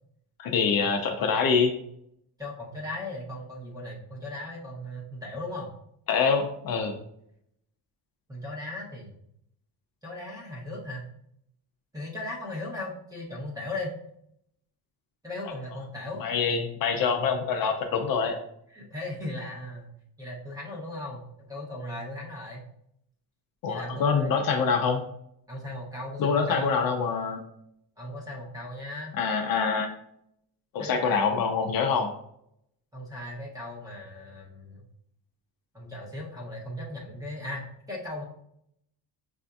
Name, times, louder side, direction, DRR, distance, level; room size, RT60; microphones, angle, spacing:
voice 1, 0.4-1.7 6.1-7.0 16.2-18.4 23.6-25.0 26.2-27.4 29.2-29.9 30.7-32.1, left 5 dB, 55° left, 4 dB, 0.6 m, -25 dB
voice 2, 2.4-5.7 8.3-9.1 10.0-11.1 11.9-13.9 15.2-16.3 18.7-19.9 20.2-22.7 23.7-24.3 25.5-26.8 28.0-29.1 30.8-31.4 32.9-34.8 35.7-38.2, left 1 dB, 10° right, -3 dB, 0.8 m, -37 dB
6.5 x 2.6 x 2.3 m, 0.73 s
cardioid pair, 165°, 42 cm